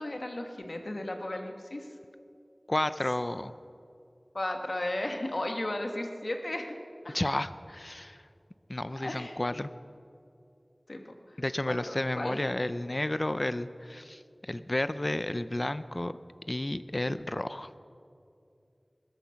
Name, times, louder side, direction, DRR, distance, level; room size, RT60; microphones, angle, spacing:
voice 1, 0.0-1.9 4.3-6.8 7.0-7.2 9.0-9.6 10.9-11.4 11.7-12.4, left 1 dB, 75° left, 4 dB, 1.4 m, -35 dB
voice 2, 2.7-3.5 7.1-8.2 8.7-9.7 11.4-16.1 16.5-17.7, left 1 dB, 45° left, 13 dB, 0.5 m, -32 dB
20.5 x 12.0 x 5.8 m, 2.6 s
wide cardioid pair, 45°, 0 cm